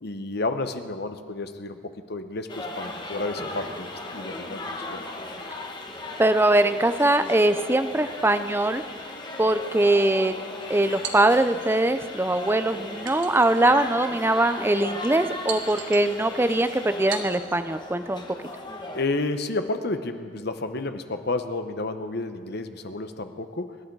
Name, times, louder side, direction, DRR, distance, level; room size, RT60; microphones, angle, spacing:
voice 1, 0.0-1.8 2.1-5.0 18.9-23.8, left 2 dB, 55° left, 8 dB, 1.0 m, -31 dB
sound 1, 2.5-19.1, left 2 dB, 25° left, 1.5 m, -37 dB
voice 2, 6.2-8.8 9.4-10.3 10.7-18.2, right 1 dB, 10° right, 10 dB, 0.5 m, -22 dB
sound 2, 11.0-11.8 13.1-13.9 14.4-14.5 15.5-16.1 17.1-17.6, right 6 dB, 75° right, 1.4 m, -37 dB
25.0 x 11.5 x 4.7 m, 2.1 s
head